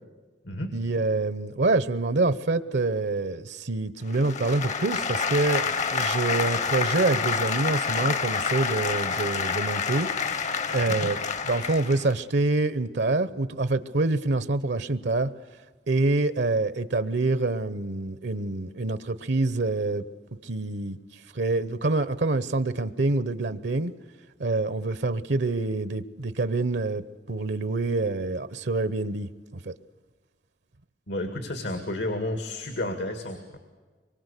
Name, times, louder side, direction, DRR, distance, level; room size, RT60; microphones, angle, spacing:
voice 1, 0.7-11.2 11.5-15.3 15.9-20.0 20.4-21.0 21.3-23.9 24.4-29.3 29.6-29.7, right 2 dB, 75° right, 15 dB, 0.9 m, -26 dB
sound 1, 4.1-12.1, left 5 dB, 45° left, 0.8 m, -28 dB
voice 2, 31.1-33.6, left 1 dB, 85° left, 7 dB, 2.2 m, -31 dB
25.0 x 23.5 x 8.3 m, 1.4 s
head